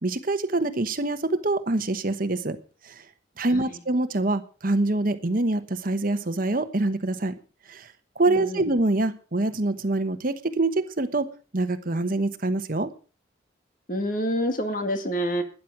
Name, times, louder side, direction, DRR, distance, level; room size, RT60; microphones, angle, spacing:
voice 1, 0.0-2.6 2.8-3.0 3.4-7.3 7.7-11.3 11.5-12.9, right 2 dB, 45° right, 10 dB, 1.2 m, -25 dB
voice 2, 8.3-8.7 13.9-15.4, equal, 45° left, 7 dB, 2.1 m, -27 dB
12.5 x 10.5 x 6.1 m, 0.37 s
head